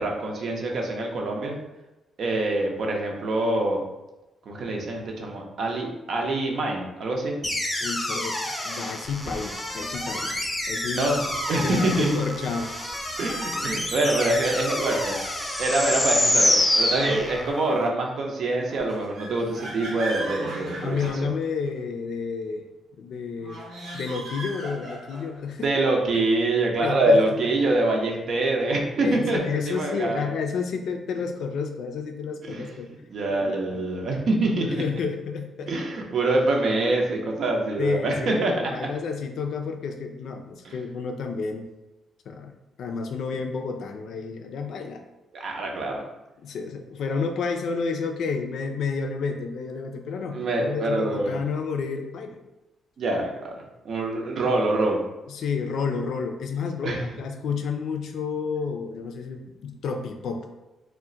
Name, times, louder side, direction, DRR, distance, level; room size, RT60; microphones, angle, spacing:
voice 1, 0.0-1.6 2.2-3.8 4.5-7.4 10.9-11.2 11.5-12.1 13.2-15.2 15.6-21.3 25.6-29.4 29.6-30.3 32.5-34.8 35.7-38.5 40.6-40.7 45.3-46.0 50.3-51.4 53.0-55.0 56.8-57.0, right 2 dB, 65° right, 0 dB, 0.6 m, -25 dB
sound 1, 7.4-17.7, left 1 dB, 15° left, 0.5 m, -27 dB
voice 2, 7.8-11.3 11.6-12.9 17.0-17.2 20.8-22.6 23.0-23.6 23.9-25.7 26.8-27.2 29.0-32.9 33.4-33.8 34.6-35.7 37.8-41.7 42.3-42.5 42.8-45.0 46.4-52.4 55.3-60.5, left 5 dB, 70° left, 5 dB, 0.3 m, -30 dB
sound 2, 9.0-17.5, right 2 dB, 25° right, 0.7 m, -41 dB
sound 3, 18.6-21.8 23.4-25.4, right 2 dB, 85° right, 1.0 m, -37 dB
2.3 x 2.1 x 3.7 m, 1.0 s
supercardioid pair, 65°, 0 cm